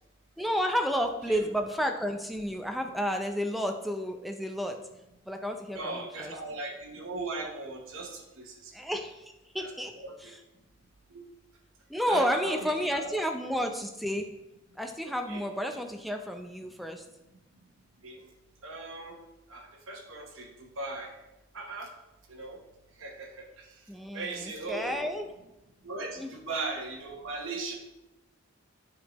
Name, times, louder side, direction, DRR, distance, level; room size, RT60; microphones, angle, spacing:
voice 1, 0.4-4.8 5.3-6.3 8.7-9.2 9.5-9.9 10.2-10.4 11.9-14.3 14.8-17.0 23.9-25.3 26.2-26.3, equal, ahead, 4 dB, 0.4 m, -31 dB
voice 2, 5.7-8.7 9.6-9.7 10.0-10.3 11.1-11.2 12.0-13.1 15.3-15.4 18.0-18.2 18.6-19.2 19.5-21.1 21.5-21.9 22.3-22.6 23.0-23.7 24.1-24.9 25.8-27.7, right 3 dB, 80° right, 0 dB, 1.1 m, -38 dB
9.2 x 5.3 x 3.0 m, 0.97 s
head